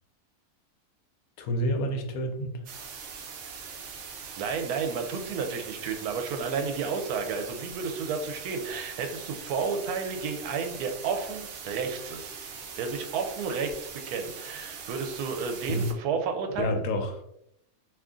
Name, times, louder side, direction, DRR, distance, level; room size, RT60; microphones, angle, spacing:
voice 1, 1.4-2.6 15.7-15.9 16.6-17.2, equal, 75° left, 5 dB, 1.0 m, -29 dB
sound 1, 2.7-15.9, right 6 dB, 65° right, 0.8 m, -42 dB
voice 2, 4.4-12.4 12.8-16.8, right 5 dB, 85° right, 5 dB, 1.1 m, -32 dB
2.7 x 2.5 x 3.6 m, 0.76 s
omnidirectional pair, 1.6 m